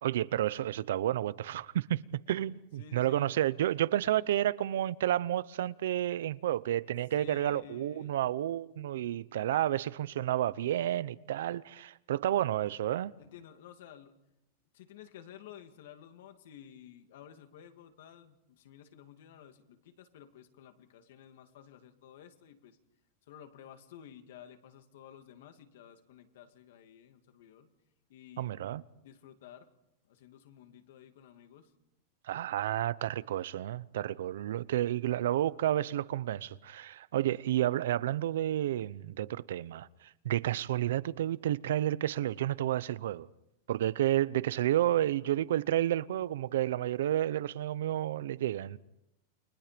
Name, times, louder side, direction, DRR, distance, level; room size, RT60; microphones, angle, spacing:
voice 1, 0.0-2.0 2.3-13.1 28.4-28.8 32.3-43.3 43.7-48.8, right 12 dB, 75° right, 0.8 m, -31 dB
voice 2, 2.8-3.4 7.1-8.2 13.2-14.2 14.7-22.8 23.2-27.7 28.1-28.6 29.0-29.7 30.0-31.7 37.2-37.3, left 9 dB, 65° left, 2.4 m, -53 dB
29.5 x 24.0 x 5.2 m
supercardioid pair, 180°, 0 cm